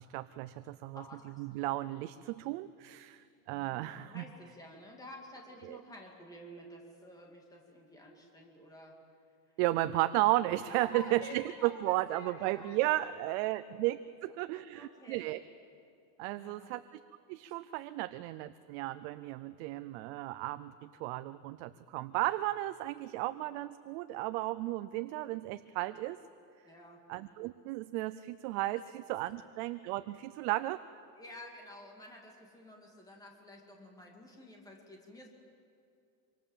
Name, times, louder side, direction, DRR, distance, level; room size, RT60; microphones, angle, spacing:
voice 1, 0.0-1.0 1.4-4.2 5.6-5.8 9.6-15.4 16.2-16.8 17.3-26.2 27.1-31.0, right 17 dB, 45° right, 12 dB, 0.6 m, -34 dB
voice 2, 0.9-1.6 3.5-9.0 10.7-12.8 14.5-15.4 16.2-16.7 26.6-27.0 31.2-35.3, left 1 dB, 10° left, 0 dB, 2.6 m, -50 dB
26.0 x 25.0 x 7.5 m, 2.5 s
cardioid pair, 175°, 47 cm